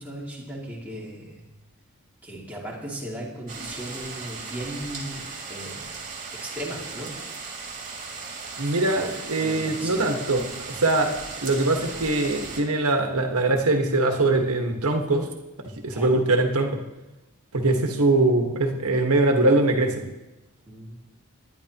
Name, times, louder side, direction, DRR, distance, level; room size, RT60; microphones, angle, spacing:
voice 1, 0.0-1.4 2.2-5.9 6.3-7.2 9.4-10.0 15.9-16.2 20.7-21.0, right 1 dB, 5° right, -5 dB, 2.5 m, -37 dB
sound 1, 3.5-12.6, right 4 dB, 35° right, 2.3 m, -37 dB
voice 2, 8.6-11.2 11.4-15.3 15.6-16.8 17.5-20.0, right 2 dB, 75° right, 3 dB, 1.5 m, -22 dB
20.5 x 10.5 x 3.0 m, 1.0 s
head